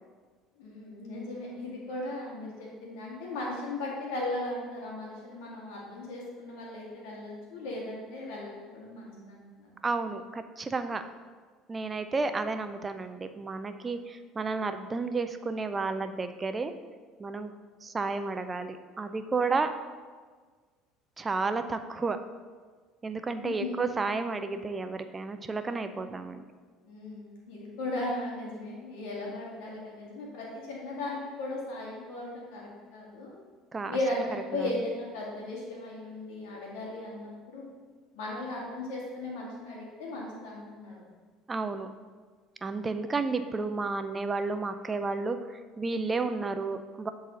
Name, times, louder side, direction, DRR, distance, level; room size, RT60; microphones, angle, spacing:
voice 1, 0.6-9.7 23.4-23.7 26.8-33.3 33.9-37.7 38.1-40.9, left 2 dB, 85° left, -4 dB, 1.9 m, -37 dB
voice 2, 9.8-11.0 11.7-16.7 17.2-17.5 17.8-19.7 21.2-22.2 23.0-26.4 33.7-34.0 34.5-34.7 41.5-41.9 42.6-45.4 45.8-47.1, right 3 dB, 25° right, 9 dB, 0.4 m, -32 dB
7.8 x 4.0 x 3.8 m, 1.5 s
supercardioid pair, 95°, 0 cm